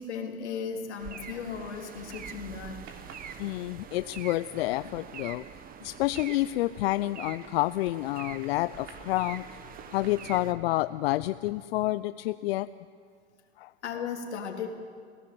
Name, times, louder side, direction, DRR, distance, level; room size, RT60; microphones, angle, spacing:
voice 1, 0.0-2.8 4.8-4.9 13.8-14.7, left 6 dB, 90° left, 2 dB, 3.6 m, -36 dB
sound 1, 1.0-10.5, right 8 dB, 25° right, 1.3 m, -45 dB
sound 2, 1.4-2.4 2.7-7.9 8.1-9.1 9.6-10.7, right 6 dB, 45° right, 3.8 m, -53 dB
voice 2, 3.4-5.4 5.8-9.6 9.9-12.7 13.6-13.7, left 17 dB, 65° left, 14 dB, 0.6 m, -29 dB
29.5 x 17.5 x 7.8 m, 2.2 s
hypercardioid pair, 120°, 33 cm